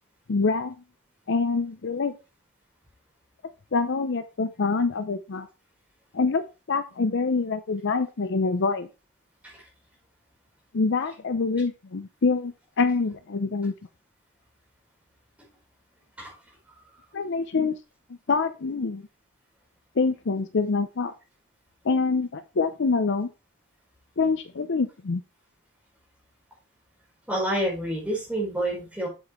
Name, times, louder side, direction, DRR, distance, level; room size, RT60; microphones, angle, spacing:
voice 1, 0.3-0.7 1.3-2.1 3.7-5.5 6.1-6.4 6.7-8.9 10.7-13.7 17.1-17.8 18.3-19.0 20.0-21.1 21.8-23.3 24.2-25.2, left 4 dB, 55° left, 11 dB, 0.6 m, -25 dB
voice 2, 27.3-29.1, right 1 dB, 5° right, -3 dB, 4.1 m, -28 dB
7.9 x 7.3 x 3.1 m, 0.29 s
head